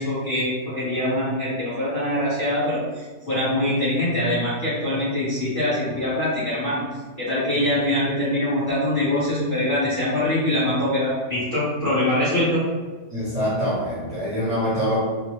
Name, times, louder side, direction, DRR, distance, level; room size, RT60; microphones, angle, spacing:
voice 1, 0.0-6.8 7.2-12.6, left 1 dB, 40° left, -11 dB, 1.0 m, -23 dB
voice 2, 13.1-15.0, equal, 25° right, -11 dB, 1.1 m, -24 dB
4.0 x 2.2 x 3.0 m, 1.3 s
omnidirectional pair, 1.9 m